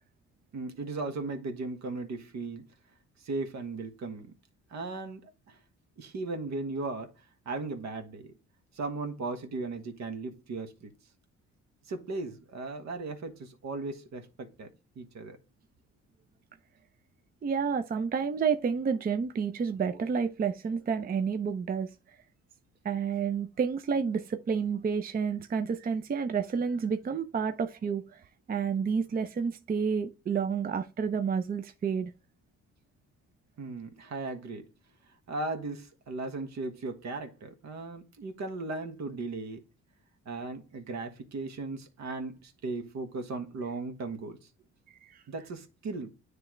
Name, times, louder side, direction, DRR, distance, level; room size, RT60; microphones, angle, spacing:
voice 1, 0.5-2.7 3.2-4.3 4.7-5.6 6.0-7.1 7.4-8.3 8.7-10.9 11.9-14.7 15.0-15.4 33.6-34.7 35.3-39.6 40.2-44.4 45.3-46.1, right 3 dB, 65° right, 1.3 m, -37 dB
voice 2, 17.4-21.9 22.8-28.2 28.5-32.1 44.9-45.2, right 6 dB, 30° right, 0.5 m, -30 dB
9.6 x 3.3 x 3.1 m
cardioid pair, 90°, 30 cm